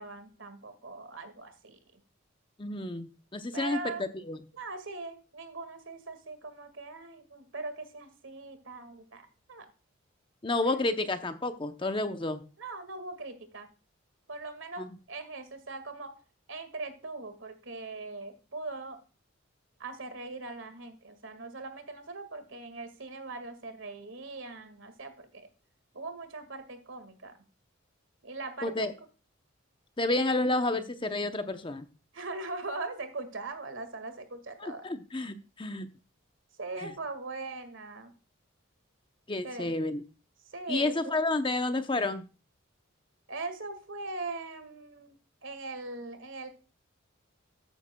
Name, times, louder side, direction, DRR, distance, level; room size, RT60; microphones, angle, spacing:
voice 1, 0.0-2.0 3.5-4.1 4.5-9.7 10.6-10.8 12.6-13.7 14.3-16.1 16.5-19.0 19.8-25.5 25.9-27.3 28.2-28.9 32.1-34.9 36.6-38.1 39.4-39.7 40.5-41.1 43.3-46.5, right 3 dB, 70° right, 9 dB, 1.9 m, -41 dB
voice 2, 2.6-4.4 10.4-12.4 14.8-14.9 28.6-28.9 30.0-31.9 34.6-35.9 36.8-36.9 39.3-40.0 40.7-42.3, left 2 dB, 25° left, 9 dB, 0.7 m, -30 dB
13.5 x 9.5 x 2.2 m, 0.35 s
head